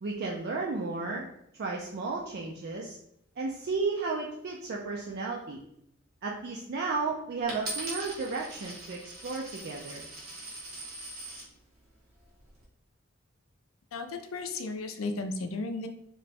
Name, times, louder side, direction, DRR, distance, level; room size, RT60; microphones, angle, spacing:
voice 1, 0.0-1.3 1.6-3.0 3.4-5.6 6.2-10.0, right 3 dB, 50° right, -1 dB, 0.4 m, -33 dB
Coin (dropping), 7.5-11.5 12.2-12.6, right 2 dB, 90° right, 1.1 m, -41 dB
voice 2, 13.9-15.9, left 3 dB, 75° left, 7 dB, 0.4 m, -34 dB
3.2 x 2.2 x 4.1 m, 0.75 s
head